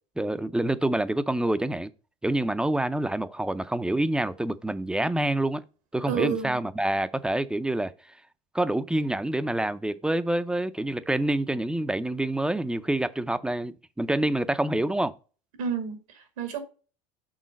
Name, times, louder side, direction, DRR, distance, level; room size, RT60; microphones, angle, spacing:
voice 1, 0.2-1.9 2.2-5.6 5.9-7.9 8.5-15.1, right 1 dB, 5° right, 0.4 m, -27 dB
voice 2, 6.1-6.6 15.6-16.6, right 8 dB, 90° right, 2.1 m, -30 dB
6.3 x 3.7 x 5.2 m
supercardioid pair, 115°, 17 cm